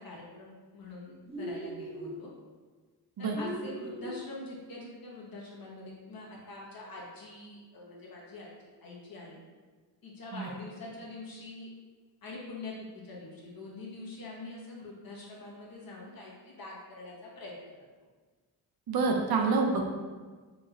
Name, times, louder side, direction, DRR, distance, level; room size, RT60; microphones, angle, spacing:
voice 1, 0.0-2.3 3.2-8.5 8.8-9.4 10.0-11.7 12.2-17.5 19.4-19.5, left 2 dB, 55° left, -3 dB, 1.0 m, -44 dB
sound 1, 1.3-2.2 3.3-4.2, right 1 dB, 15° right, 0.4 m, -39 dB
voice 2, 18.9-19.8, right 4 dB, 65° right, 2 dB, 0.6 m, -27 dB
3.0 x 2.9 x 2.4 m, 1.4 s
cardioid pair, 70°, 41 cm